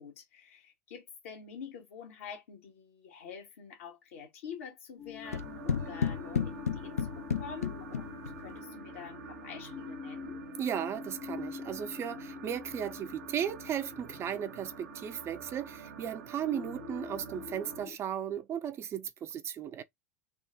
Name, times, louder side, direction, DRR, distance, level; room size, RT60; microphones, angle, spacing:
voice 1, 0.0-10.4, left 7 dB, 65° left, 1.6 m, -47 dB
sound 1, 5.0-18.0, left 7 dB, 35° left, 0.6 m, -46 dB
sound 2, 5.2-17.9, right 8 dB, 75° right, 0.7 m, -48 dB
sound 3, 5.3-8.5, left 7 dB, 80° left, 0.5 m, -33 dB
voice 2, 10.6-19.8, right 9 dB, 35° right, 0.5 m, -36 dB
3.6 x 2.4 x 4.4 m
figure-of-eight pair, 80°, 8 cm